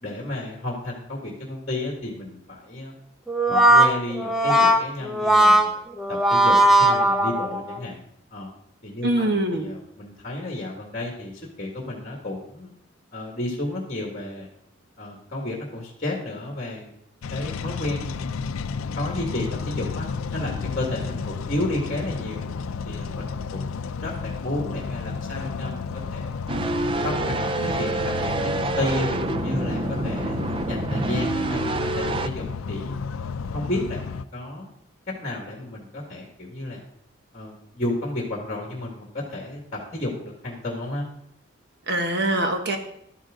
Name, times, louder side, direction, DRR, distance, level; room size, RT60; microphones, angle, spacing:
voice 1, 0.0-2.9 3.5-8.0 8.3-8.5 8.8-11.3 11.6-12.7 13.1-14.5 15.0-16.9 17.3-18.3 18.9-20.1 20.3-22.5 22.8-26.3 26.8-30.4 30.7-32.9 33.5-34.7 35.1-36.8 37.3-41.1, left 1 dB, 35° left, -1 dB, 2.1 m, -32 dB
Brass instrument, 3.3-7.8, right 1 dB, ahead, 0.8 m, -18 dB
voice 2, 9.0-9.7 41.9-42.8, right 1 dB, 50° right, 5 dB, 1.2 m, -23 dB
sound 1, 17.2-34.2, left 5 dB, 90° left, 0.5 m, -32 dB
sound 2, 26.5-32.3, right 2 dB, 25° right, 0.4 m, -27 dB
12.0 x 10.0 x 3.8 m, 0.75 s
head